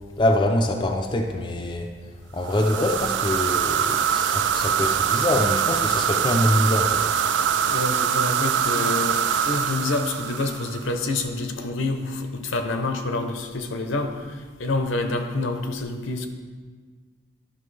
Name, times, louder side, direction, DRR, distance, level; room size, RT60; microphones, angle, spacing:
voice 1, 0.2-1.9 2.3-7.1, left 1 dB, 25° left, 3 dB, 0.4 m, -24 dB
sound 1, 2.5-11.0, right 8 dB, 60° right, 0.3 m, -23 dB
voice 2, 7.7-16.3, left 2 dB, 75° left, 6 dB, 0.8 m, -27 dB
11.0 x 5.8 x 3.3 m, 1.5 s
head